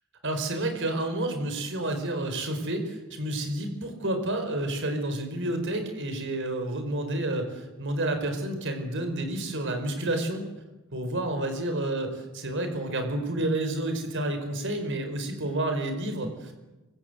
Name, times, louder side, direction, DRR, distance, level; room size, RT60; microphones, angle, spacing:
voice 1, 0.2-10.4 10.9-16.5, right 1 dB, 55° right, 7 dB, 4.8 m, -30 dB
25.0 x 23.5 x 8.1 m, 1.1 s
head